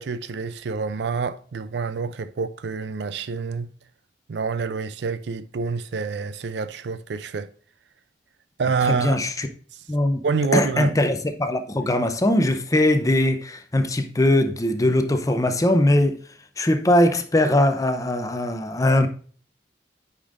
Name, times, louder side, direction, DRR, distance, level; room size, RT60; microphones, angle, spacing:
voice 1, 0.0-3.7 4.3-7.5 8.6-9.2 9.7-9.8 10.2-10.9, right 5 dB, 75° right, 0.4 m, -27 dB
voice 2, 8.9-9.5 9.9-10.2 10.5-16.2 16.6-19.1, left 1 dB, 20° left, 0.6 m, -21 dB
8.5 x 5.3 x 2.5 m
head